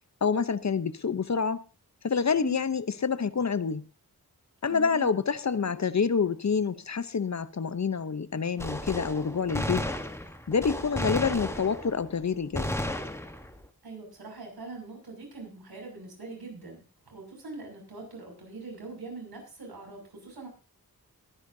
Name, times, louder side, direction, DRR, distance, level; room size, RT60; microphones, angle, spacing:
voice 1, 0.2-1.6 2.0-3.8 4.6-9.9 10.5-12.8, left 5 dB, 50° left, 0.8 m, -27 dB
voice 2, 4.7-5.2 13.8-20.5, right 3 dB, 85° right, 6.5 m, -42 dB
Gunshot gunfire, 8.6-12.1 12.5-13.6, left 1 dB, 5° left, 1.2 m, -33 dB
22.0 x 10.0 x 2.7 m
wide cardioid pair, 95°, 37 cm